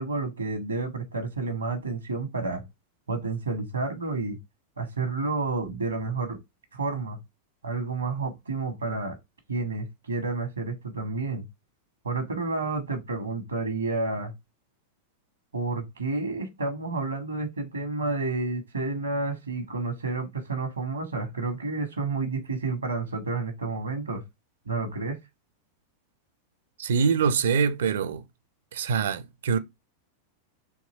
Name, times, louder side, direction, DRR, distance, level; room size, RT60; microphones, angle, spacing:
voice 1, 0.0-2.6 3.1-4.4 4.8-6.4 6.7-7.2 7.6-9.2 9.5-11.4 12.0-14.3 15.5-24.2 24.7-25.2, right 3 dB, 75° right, 1.1 m, -30 dB
voice 2, 26.8-28.2 28.7-29.6, right 6 dB, 60° right, 0.5 m, -24 dB
3.5 x 2.9 x 4.1 m
figure-of-eight pair, 90°, 0 cm